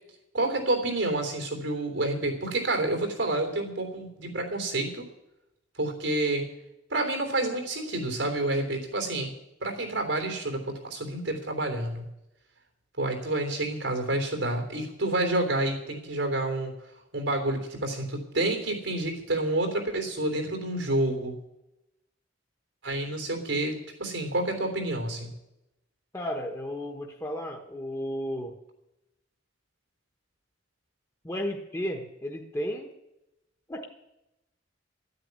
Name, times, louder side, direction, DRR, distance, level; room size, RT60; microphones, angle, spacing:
voice 1, 0.3-5.1 5.8-6.5 6.9-9.3 9.6-12.0 13.0-16.7 17.1-21.3 22.8-25.3, right 2 dB, 85° right, 5 dB, 3.4 m, -29 dB
voice 2, 26.1-28.5 31.2-32.9 33.7-33.9, equal, 15° left, 2 dB, 1.2 m, -33 dB
12.0 x 9.5 x 9.6 m, 0.90 s
head